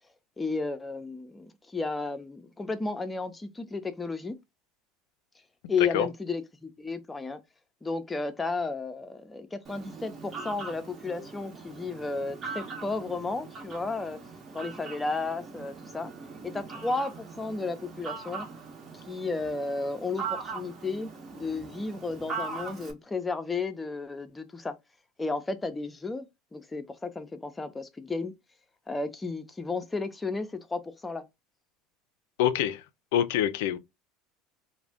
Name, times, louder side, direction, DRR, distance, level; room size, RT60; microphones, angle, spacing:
voice 1, 0.4-4.4 5.7-7.4 7.8-14.2 14.5-16.1 16.4-18.5 19.1-24.7 25.2-28.3 28.9-31.2, left 3 dB, 15° left, 0.5 m, -33 dB
Fowl, 9.6-22.9, right 5 dB, 40° right, 1.0 m, -41 dB
voice 2, 32.4-32.8 33.1-33.8, left 11 dB, 75° left, 0.4 m, -25 dB
2.4 x 2.1 x 3.4 m
hypercardioid pair, 85°, 0 cm